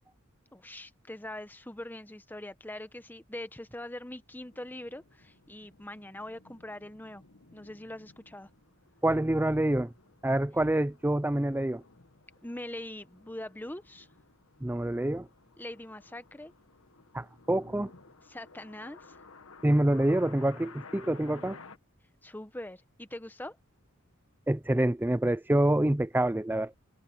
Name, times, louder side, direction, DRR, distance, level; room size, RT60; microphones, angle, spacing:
voice 1, 0.5-7.2 7.5-8.5 12.4-14.1 15.6-16.5 18.3-19.2 22.2-23.6, left 1 dB, 10° left, 0.9 m, -42 dB
sound 1, 4.5-21.8, left 4 dB, 75° left, 1.5 m, -55 dB
voice 2, 9.0-9.9 10.2-11.8 14.6-15.3 17.1-17.9 19.6-21.6 24.5-26.8, right 1 dB, 10° right, 0.4 m, -26 dB
head